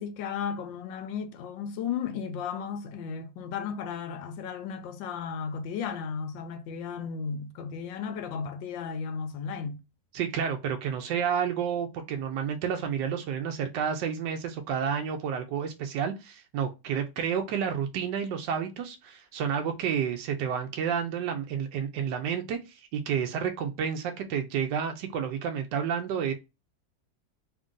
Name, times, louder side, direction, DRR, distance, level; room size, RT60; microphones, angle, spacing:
voice 1, 0.0-9.8, left 6 dB, 90° left, 1.4 m, -34 dB
voice 2, 10.1-26.3, right 7 dB, 75° right, 1.2 m, -30 dB
3.5 x 2.5 x 3.6 m
omnidirectional pair, 2.0 m